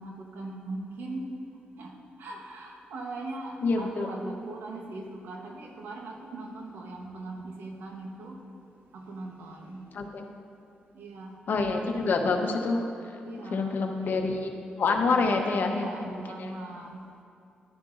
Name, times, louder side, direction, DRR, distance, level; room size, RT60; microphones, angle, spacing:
voice 1, 0.0-1.3 1.8-8.4 8.9-10.0 10.9-11.4 13.2-14.1 15.2-15.4 15.7-17.0, right 2 dB, 85° right, 1 dB, 1.1 m, -40 dB
voice 2, 3.6-4.1 9.9-10.3 11.5-14.5 14.8-16.5, left 3 dB, 65° left, 3 dB, 0.9 m, -27 dB
12.0 x 9.9 x 2.6 m, 2.5 s
cardioid pair, 75°, 3 cm